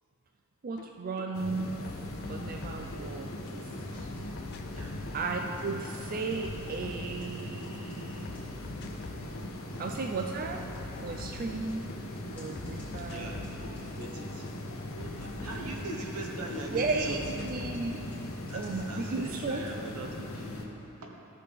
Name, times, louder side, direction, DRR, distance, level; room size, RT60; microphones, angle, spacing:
voice 1, 0.6-1.8 2.3-3.3 5.1-8.3 9.8-10.7 11.0-11.9 12.4-13.6 15.5-15.8 16.7-18.0 18.5-19.6, right 4 dB, 40° right, 2 dB, 0.4 m, -35 dB
sound 1, 0.8-0.9 1.2-3.4 3.7-7.7 8.0-9.5 9.8-12.0 12.3-16.3 16.6-17.9, left 3 dB, 45° left, 0.4 m, -45 dB
sound 2, 1.3-20.6, left 1 dB, 60° left, 0.9 m, -40 dB
voice 2, 3.0-4.1 4.7-5.0 9.7-9.8 13.1-13.5 13.8-14.5 14.9-17.5 18.4-21.2, right 1 dB, 80° right, -1 dB, 1.2 m, -42 dB
sound 3, 3.7-19.9, left 1 dB, 5° left, 2.2 m, -57 dB
13.5 x 6.6 x 3.5 m, 3.0 s
head